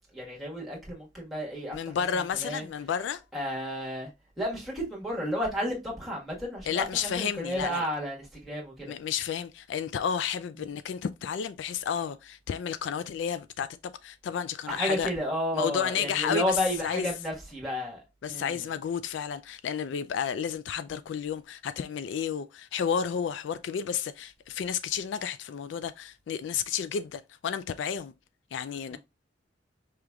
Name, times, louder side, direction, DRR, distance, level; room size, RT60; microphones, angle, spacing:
voice 1, 0.1-1.8 2.4-2.6 3.3-4.1 4.4-8.9 14.7-18.0 18.3-18.6 28.9-29.0, equal, ahead, 1.5 m, -32 dB
voice 2, 1.7-3.2 6.7-7.9 8.8-15.1 15.5-17.1 18.2-28.1 28.5-29.0, left 7 dB, 80° left, 0.3 m, -31 dB
4.9 x 3.0 x 2.3 m
head